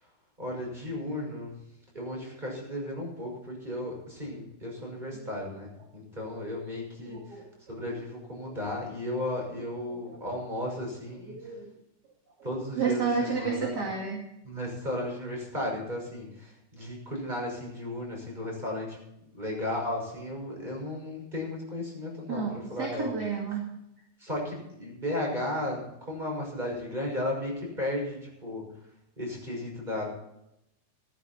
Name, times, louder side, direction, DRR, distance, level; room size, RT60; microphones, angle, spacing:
voice 1, 0.4-1.6 1.9-7.4 7.7-11.4 12.4-13.9 14.4-19.0 19.3-23.1 24.2-28.6 29.2-30.1, left 1 dB, 15° right, -1 dB, 6.2 m, -34 dB
voice 2, 7.0-7.5 7.9-8.0 8.5-8.6 9.9-10.2 11.2-11.7 12.8-14.3 22.3-23.7, right 5 dB, 35° right, -1 dB, 2.7 m, -31 dB
15.5 x 14.5 x 4.3 m, 0.82 s
omnidirectional pair, 3.5 m